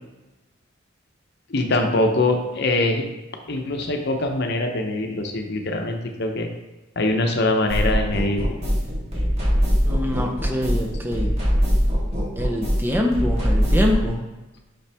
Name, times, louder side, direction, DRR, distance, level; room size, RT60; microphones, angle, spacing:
voice 1, 1.5-3.1 3.5-6.5 7.0-8.6, left 2 dB, 50° left, 4 dB, 0.7 m, -23 dB
sound 1, 7.7-14.1, equal, 30° right, 1.8 m, -22 dB
voice 2, 9.9-11.3 12.4-14.3, left 1 dB, 10° right, 1 dB, 0.6 m, -25 dB
6.0 x 5.5 x 3.4 m, 1.1 s
head